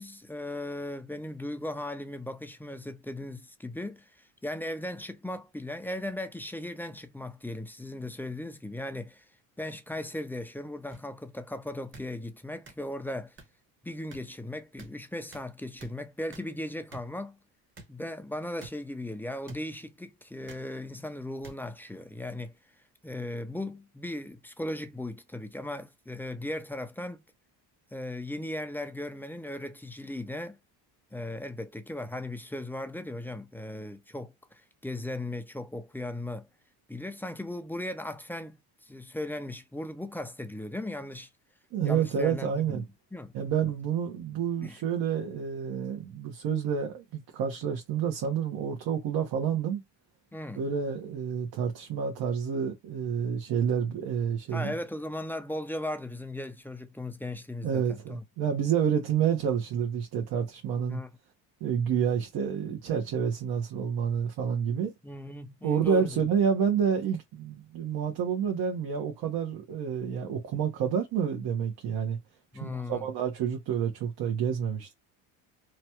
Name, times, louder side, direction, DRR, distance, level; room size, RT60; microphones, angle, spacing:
voice 1, 0.0-4.1 4.4-9.2 9.6-13.4 13.8-17.4 17.9-22.5 23.0-27.2 27.9-30.6 31.1-36.5 36.9-38.6 38.8-41.3 41.8-42.9 43.1-43.3 44.6-44.8 50.3-50.6 54.5-58.2 60.9-61.1 65.0-66.2 72.5-73.0, left 1 dB, 5° left, 0.4 m, -37 dB
sound 1, 10.9-11.0 11.9-12.1 12.7-12.8 13.4-13.5 14.1-14.2 14.8-14.9 15.3-15.4 15.8-15.9 16.3-16.5 16.9-17.0 17.8-17.9 18.6-18.7 19.5-19.6 20.5-20.6 21.4-21.5 22.4-22.6, right 3 dB, 30° right, 1.1 m, -46 dB
voice 2, 41.7-42.8 43.3-49.8 50.5-54.7 57.6-61.0 61.6-64.9 65.6-72.2 72.6-74.9, right 7 dB, 60° right, 1.1 m, -29 dB
3.0 x 2.3 x 2.9 m
supercardioid pair, 95°, 41 cm